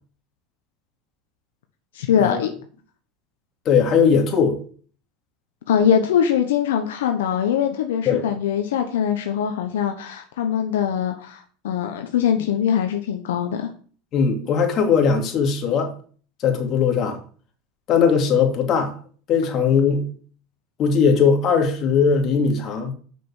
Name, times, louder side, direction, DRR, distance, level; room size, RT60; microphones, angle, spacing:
voice 1, 1.9-2.5 5.7-13.7, left 8 dB, 85° left, 1.2 m, -22 dB
voice 2, 3.6-4.6 8.1-8.3 14.1-15.9 16.4-17.2 17.9-18.9 19.3-20.1 20.8-22.9, left 6 dB, 45° left, 2.7 m, -19 dB
6.9 x 6.3 x 7.2 m
supercardioid pair, 110°, 0 cm